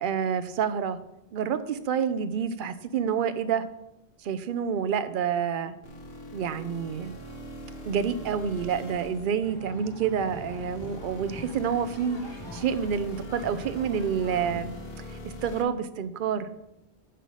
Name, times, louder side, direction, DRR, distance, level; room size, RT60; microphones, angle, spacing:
voice 1, 0.0-1.0 1.3-3.7 4.2-5.7 6.3-7.2 7.9-14.7 15.2-16.5, right 7 dB, 60° right, 11 dB, 0.7 m, -28 dB
sound 1, 5.8-15.6, left 1 dB, 65° left, 1.4 m, -42 dB
sound 2, 9.4-14.6, left 1 dB, 25° left, 0.8 m, -44 dB
9.9 x 3.5 x 6.2 m, 0.89 s
omnidirectional pair, 1.1 m